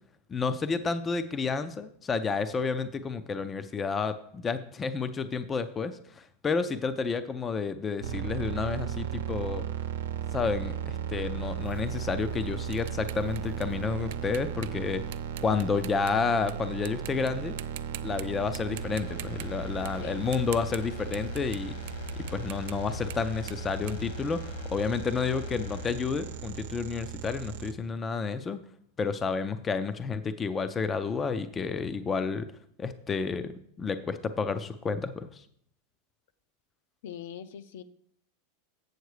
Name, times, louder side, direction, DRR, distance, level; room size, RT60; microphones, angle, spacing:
voice 1, 0.3-9.6 10.3-15.0 15.4-17.5 18.0-21.7 22.2-28.6 29.0-32.5 32.8-35.4, left 5 dB, 15° left, 11 dB, 0.4 m, -30 dB
sound 1, 8.0-27.7, right 9 dB, 90° right, 0.8 m, -36 dB
sound 2, 11.6-16.5 16.9-17.3 17.6-18.2 18.5-24.9, right 16 dB, 65° right, 0.3 m, -45 dB
sound 3, 18.7-27.4 27.7-27.8, left 7 dB, 50° left, 1.2 m, -43 dB
voice 2, 37.0-37.8, left 9 dB, 70° left, 12 dB, 0.7 m, -42 dB
7.9 x 7.1 x 4.8 m, 0.66 s
supercardioid pair, 165°, 0 cm